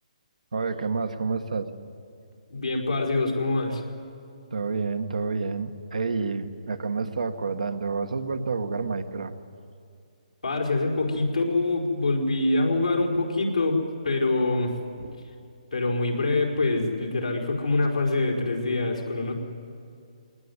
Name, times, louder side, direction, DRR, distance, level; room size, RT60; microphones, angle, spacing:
voice 1, 0.5-1.7 4.5-9.3 15.0-15.2, right 4 dB, 75° right, 8 dB, 1.6 m, -29 dB
voice 2, 2.5-3.8 10.4-14.7 15.7-19.3, left 2 dB, 85° left, 0 dB, 4.9 m, -25 dB
21.0 x 19.5 x 9.8 m, 2.4 s
hypercardioid pair, 145°, 4 cm